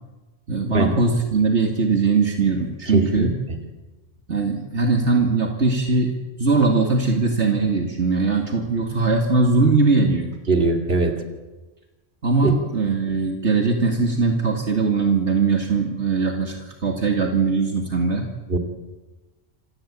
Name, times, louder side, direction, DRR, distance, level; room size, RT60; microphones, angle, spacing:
voice 1, 0.5-3.4 4.3-6.1 6.4-10.3 12.2-18.3, right 4 dB, 70° right, 3 dB, 2.6 m, -20 dB
voice 2, 2.9-3.3 10.5-11.1 12.4-12.5 18.5-18.6, right 3 dB, 55° right, 4 dB, 2.9 m, -20 dB
27.5 x 16.5 x 8.6 m, 1.1 s
omnidirectional pair, 1.2 m